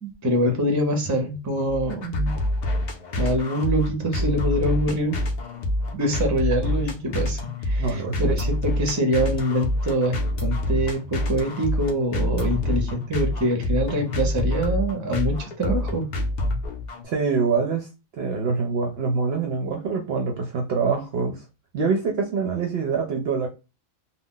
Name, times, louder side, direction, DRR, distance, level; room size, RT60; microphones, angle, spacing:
voice 1, 0.0-2.3 3.2-5.2 5.9-7.4 7.6-16.0, equal, 20° right, 3 dB, 0.5 m, -25 dB
sound 1, 1.6-17.0, left 1 dB, 55° left, 0.5 m, -26 dB
voice 2, 7.8-8.4 17.0-17.9 18.1-21.4 21.7-23.5, right 5 dB, 65° right, 2 dB, 0.7 m, -25 dB
2.4 x 2.1 x 3.6 m, 0.29 s
omnidirectional pair, 1.4 m